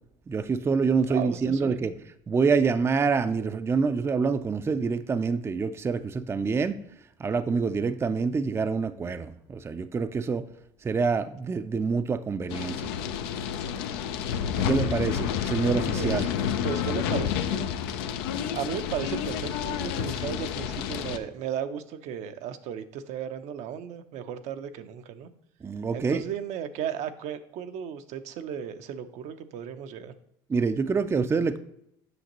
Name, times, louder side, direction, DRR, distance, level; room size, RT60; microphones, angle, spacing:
voice 1, 0.3-1.9 2.3-6.8 7.2-10.4 10.8-12.9 14.7-16.3 25.6-26.2 30.5-31.6, right 5 dB, 20° right, 10 dB, 0.4 m, -26 dB
voice 2, 1.1-1.8 14.5-16.3 16.6-17.7 18.5-25.3 25.9-30.1, right 8 dB, 65° right, 9 dB, 0.6 m, -35 dB
sound 1, 12.5-21.2, left 8 dB, 90° left, 0.5 m, -29 dB
7.9 x 5.8 x 3.0 m, 0.74 s
supercardioid pair, 85°, 12 cm